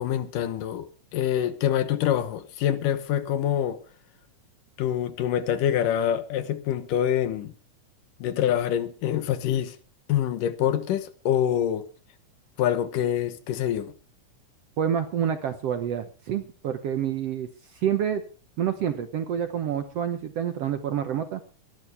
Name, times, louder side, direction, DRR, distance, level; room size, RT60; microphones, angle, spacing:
voice 1, 0.0-3.8 4.8-7.5 8.2-9.8 10.1-11.9 12.6-13.9, left 10 dB, 75° left, 2.7 m, -25 dB
voice 2, 14.8-18.2 18.6-21.4, right 9 dB, 65° right, 1.7 m, -28 dB
22.5 x 12.0 x 3.5 m
omnidirectional pair, 3.9 m